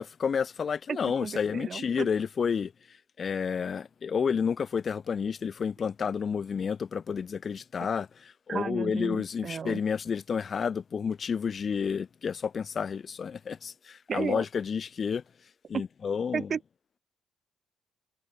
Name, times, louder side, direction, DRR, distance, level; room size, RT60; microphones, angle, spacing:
voice 1, 0.0-2.7 3.2-15.2 15.7-16.5, left 6 dB, 45° left, 0.6 m, -30 dB
voice 2, 0.9-2.1 8.5-9.8 14.1-14.4 15.7-15.8 16.3-16.6, right 6 dB, 45° right, 0.7 m, -33 dB
cardioid pair, 90°, 0 cm